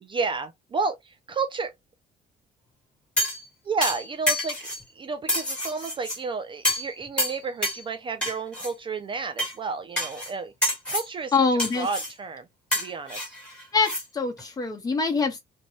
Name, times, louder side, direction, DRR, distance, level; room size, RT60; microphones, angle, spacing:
voice 1, 0.0-1.7 3.7-4.6 5.0-11.3 11.7-12.4 12.7-13.4, right 4 dB, 30° right, 0.3 m, -31 dB
sound 1, 3.2-3.5 3.8-4.8 5.3-6.2 6.6-6.9 7.2-7.8 8.2-8.7 9.4-9.5 10.0-10.3 10.6-11.1 11.6-12.1 12.7-14.0 14.4-14.5, left 1 dB, 5° left, 1.3 m, -28 dB
voice 2, 11.3-11.9 13.7-15.4, left 4 dB, 20° left, 0.9 m, -24 dB
2.6 x 2.2 x 3.0 m
cardioid pair, 135°, 17 cm